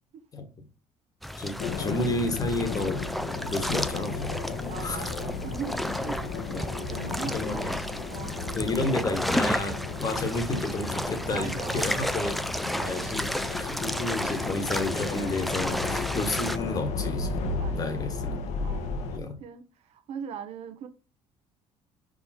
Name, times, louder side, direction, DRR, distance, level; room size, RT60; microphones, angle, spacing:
Ocean Sample, 1.2-16.6, equal, ahead, 0.4 m, -32 dB
voice 1, 1.4-3.1 3.5-4.4 4.8-5.1 6.5-6.7 7.0-7.7 8.5-12.4 12.7-17.4 17.7-18.4 19.1-19.4, left 2 dB, 30° left, 1.4 m, -31 dB
sound 1, 1.6-19.2, left 4 dB, 70° left, 1.1 m, -34 dB
voice 2, 4.7-7.8 8.1-8.4 11.2-12.2 12.8-13.1 17.6-17.9 18.6-20.9, right 8 dB, 60° right, 0.9 m, -41 dB
5.1 x 4.9 x 4.2 m
cardioid pair, 125°, 12 cm